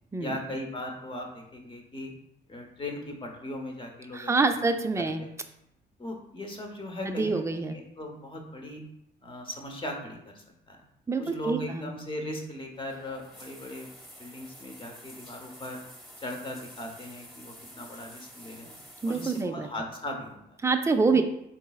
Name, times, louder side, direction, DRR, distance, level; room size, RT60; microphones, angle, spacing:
voice 1, 0.2-2.1 2.5-4.6 5.0-5.3 6.0-8.8 9.2-10.8 11.2-13.9 14.2-15.8 16.2-18.7 19.1-20.6 21.1-21.2, left 1 dB, 25° left, 2 dB, 0.8 m, -38 dB
voice 2, 4.1-5.3 7.0-7.8 11.1-11.9 19.0-19.7 20.6-21.2, right 4 dB, 15° right, 7 dB, 0.4 m, -26 dB
sound 1, 12.7-19.4, equal, ahead, 1.1 m, -49 dB
4.0 x 3.8 x 2.3 m, 0.78 s
cardioid pair, 90°, 20 cm